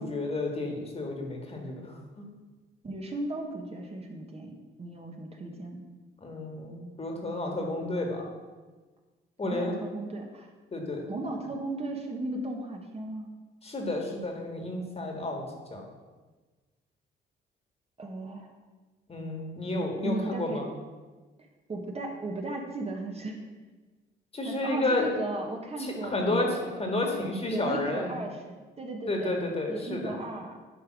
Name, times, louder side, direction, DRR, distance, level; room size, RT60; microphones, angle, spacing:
voice 1, 0.0-2.3 6.2-8.3 9.4-9.8 10.7-11.1 13.6-15.4 15.7-15.9 19.1-20.7 24.3-25.2 25.8-28.2 29.1-30.2, left 2 dB, 30° left, 2 dB, 1.8 m, -31 dB
voice 2, 2.8-5.9 9.4-10.5 11.1-13.3 18.0-18.5 20.0-20.6 21.7-23.4 24.4-26.7 27.5-29.4 29.7-30.6, right 2 dB, 30° right, 1 dB, 1.2 m, -36 dB
10.5 x 3.5 x 6.2 m, 1.3 s
cardioid pair, 90°, 20 cm